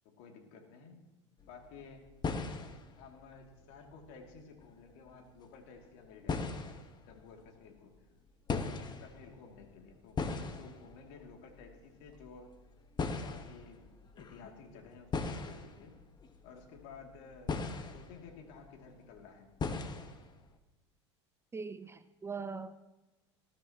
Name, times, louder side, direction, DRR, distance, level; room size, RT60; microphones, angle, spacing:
voice 1, 0.0-1.1 1.5-2.1 3.0-6.6 7.1-8.0 8.5-12.5 13.2-16.0 16.4-17.6 17.9-19.5, left 5 dB, 60° left, 2 dB, 2.7 m, -53 dB
sound 1, 1.4-1.8 2.1-5.7 5.9-7.4 8.5-19.1 19.6-20.5, left 4 dB, 30° left, 1.3 m, -39 dB
voice 2, 21.5-22.7, right 5 dB, 15° right, 13 dB, 0.6 m, -41 dB
19.5 x 13.5 x 3.0 m, 1.1 s
hypercardioid pair, 80°, 15 cm